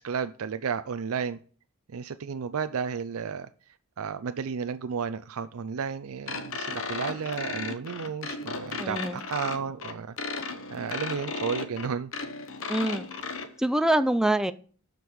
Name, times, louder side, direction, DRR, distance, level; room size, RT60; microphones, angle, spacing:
voice 1, 0.0-1.4 1.9-3.5 4.0-10.2 10.4-12.1, right 6 dB, 75° right, 11 dB, 0.5 m, -33 dB
sound 1, 6.3-13.5, left 4 dB, 65° left, 1.2 m, -35 dB
voice 2, 8.8-9.2 12.7-13.0 13.6-14.5, right 1 dB, 5° right, 11 dB, 0.5 m, -25 dB
12.5 x 5.3 x 4.7 m, 0.43 s
head